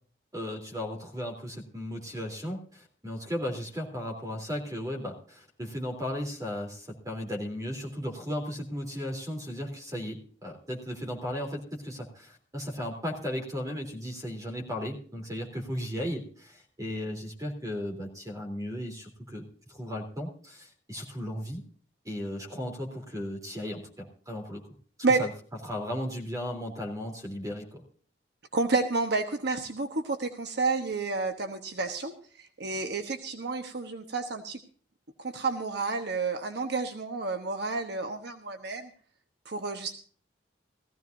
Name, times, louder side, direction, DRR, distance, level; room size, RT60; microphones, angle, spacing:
voice 1, 0.3-19.4 19.7-21.6 22.0-24.6 25.2-25.3 25.6-27.8, equal, 20° right, 4 dB, 3.3 m, -36 dB
voice 2, 28.5-34.6 35.2-38.9 39.4-39.9, right 3 dB, 65° right, 6 dB, 1.2 m, -30 dB
18.5 x 15.0 x 2.6 m, 0.44 s
head